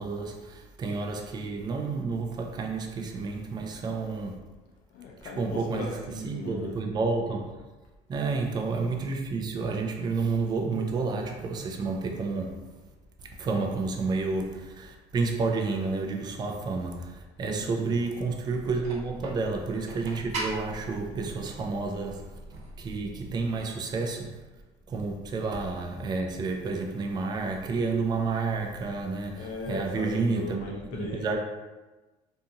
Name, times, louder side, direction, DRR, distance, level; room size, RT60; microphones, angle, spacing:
voice 1, 0.0-4.4 5.4-5.9 6.2-7.6 8.1-12.7 13.4-22.4 22.8-24.4 24.9-30.7 30.9-31.4, right 4 dB, 25° right, 0.4 m, -30 dB
voice 2, 4.9-6.8 17.6-18.1 29.3-31.4, left 3 dB, 80° left, 0.5 m, -38 dB
sound 1, 18.5-23.5, right 2 dB, 50° right, 0.8 m, -41 dB
2.6 x 2.4 x 2.7 m
cardioid pair, 120°, 16 cm